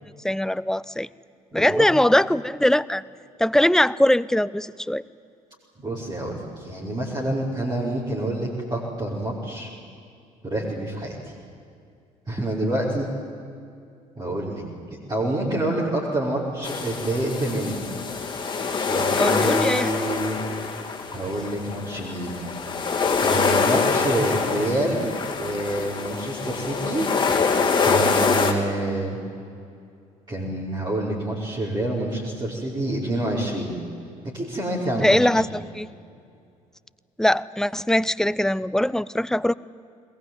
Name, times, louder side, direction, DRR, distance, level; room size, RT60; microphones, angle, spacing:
voice 1, 0.2-1.1 1.5-3.0 3.4-5.0 19.2-20.0 34.9-35.9 37.2-39.5, left 1 dB, 5° left, 19 dB, 0.6 m, -21 dB
voice 2, 1.5-1.9 5.8-9.7 10.4-11.2 12.3-13.1 14.2-14.6 15.1-17.8 18.9-20.4 21.1-22.4 23.2-27.1 27.8-29.2 30.3-33.7 34.3-35.4, right 1 dB, 25° right, -6 dB, 5.5 m, -27 dB
sound 1, 16.6-28.5, left 5 dB, 25° left, 3.2 m, -25 dB
21.5 x 20.5 x 9.3 m, 2.4 s
figure-of-eight pair, 55°, 18 cm